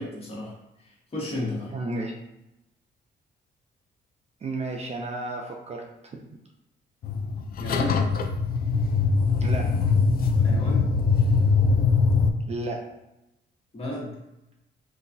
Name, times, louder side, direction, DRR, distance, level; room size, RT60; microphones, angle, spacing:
voice 1, 0.0-1.7 7.6-8.1 10.4-10.9 13.7-14.1, left 1 dB, 30° left, -5 dB, 1.3 m, -33 dB
voice 2, 1.7-2.1 4.4-6.2 9.4-9.7 12.5-12.8, right 2 dB, 35° right, 1 dB, 0.4 m, -32 dB
sound 1, 7.0-12.3, left 4 dB, 50° left, 0.4 m, -22 dB
3.8 x 2.3 x 2.6 m, 0.91 s
cardioid pair, 90°, 20 cm